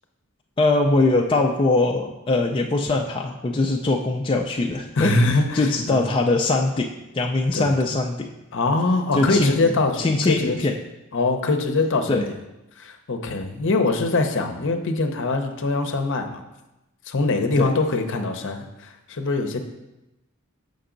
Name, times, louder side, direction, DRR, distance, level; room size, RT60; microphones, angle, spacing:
voice 1, 0.6-5.2 5.5-6.9 7.1-8.3 9.2-10.8 12.1-12.3 17.6-17.7, left 2 dB, 25° left, 1 dB, 0.4 m, -21 dB
voice 2, 5.0-6.1 7.5-7.7 8.5-10.6 11.1-12.3 12.8-16.4 17.1-19.6, left 3 dB, 60° left, 6 dB, 0.7 m, -23 dB
7.0 x 5.3 x 3.8 m, 0.97 s
head